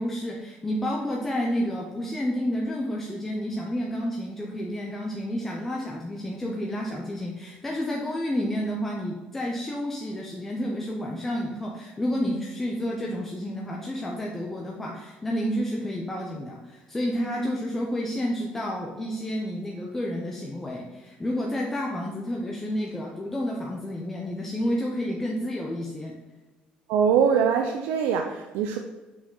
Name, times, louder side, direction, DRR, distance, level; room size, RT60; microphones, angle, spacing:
voice 1, 0.0-26.1, equal, 10° left, -1 dB, 0.5 m, -30 dB
voice 2, 26.9-28.8, right 7 dB, 90° right, 4 dB, 0.5 m, -23 dB
6.2 x 4.8 x 3.8 m, 1.2 s
cardioid pair, 180°, 3 cm